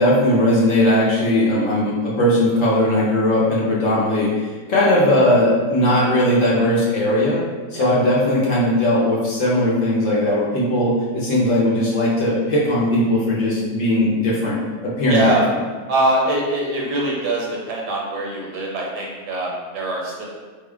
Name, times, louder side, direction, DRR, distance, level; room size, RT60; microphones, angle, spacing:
voice 1, 0.0-4.3 4.7-7.4 7.7-15.4, left 1 dB, 55° left, -6 dB, 1.1 m, -18 dB
voice 2, 15.1-15.4 15.9-20.3, right 1 dB, 75° right, -3 dB, 1.5 m, -23 dB
5.3 x 2.3 x 3.5 m, 1.4 s
omnidirectional pair, 1.8 m